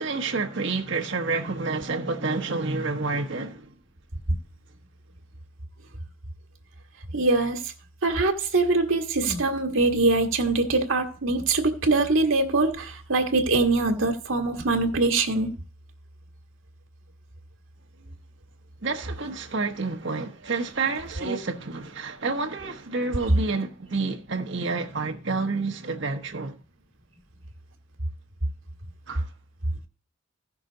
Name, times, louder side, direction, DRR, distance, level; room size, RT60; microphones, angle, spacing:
voice 1, 0.0-3.7 18.8-26.6 29.1-29.3, right 3 dB, 65° right, 1.2 m, -29 dB
voice 2, 7.1-7.6 8.0-15.5, right 3 dB, 85° right, 1.5 m, -23 dB
14.5 x 6.0 x 3.9 m
head